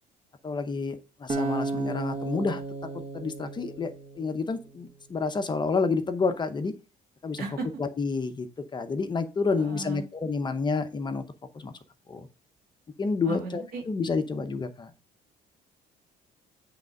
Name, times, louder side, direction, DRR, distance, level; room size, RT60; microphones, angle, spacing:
voice 1, 0.4-2.6 3.1-6.7 7.2-7.4 7.8-11.2 11.5-11.7 12.1-12.3 13.0-14.9, left 4 dB, 25° left, 9 dB, 0.7 m, -29 dB
Acoustic guitar, 1.3-4.5, right 3 dB, 35° right, 1.2 m, -33 dB
voice 2, 9.5-10.1 13.2-13.8, right 4 dB, 70° right, 3 dB, 2.1 m, -35 dB
8.2 x 3.5 x 5.2 m, 0.34 s
cardioid pair, 110°, 17 cm